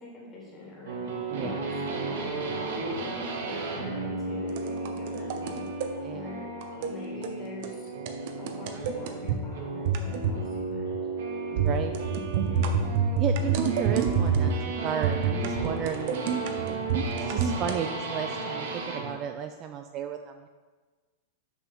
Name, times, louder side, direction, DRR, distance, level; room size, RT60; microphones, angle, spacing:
voice 1, 0.0-3.0 3.4-5.6 6.1-6.5 6.9-7.9 8.4-10.9 11.9-12.9, left 3 dB, 15° left, -5 dB, 2.1 m, -44 dB
sound 1, 0.9-19.1, right 3 dB, 75° right, 1.5 m, -34 dB
voice 2, 1.3-1.6 6.0-6.3 11.5-11.9 13.2-16.2 17.2-20.5, right 9 dB, 25° right, 6 dB, 0.3 m, -34 dB
sound 2, 4.5-5.9 6.6-6.9 7.2-7.4 7.6-7.7 8.1-9.4 9.8-10.4 10.7-11.0 11.6-14.6 15.0-17.8, right 6 dB, 50° right, 0.7 m, -28 dB
6.5 x 4.8 x 5.6 m, 1.4 s
supercardioid pair, 165°, 0 cm